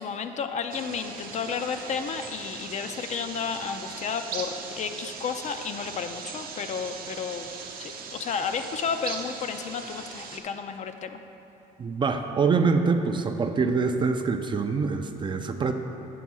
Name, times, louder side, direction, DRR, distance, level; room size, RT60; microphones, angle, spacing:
voice 1, 0.0-7.5 7.8-11.2, left 6 dB, 45° left, 8 dB, 0.4 m, -32 dB
sound 1, 0.7-10.4, right 5 dB, 60° right, 0.7 m, -39 dB
voice 2, 11.8-15.7, right 4 dB, 30° right, 7 dB, 0.4 m, -25 dB
8.4 x 3.5 x 6.1 m, 2.9 s
cardioid pair, 110°, 17 cm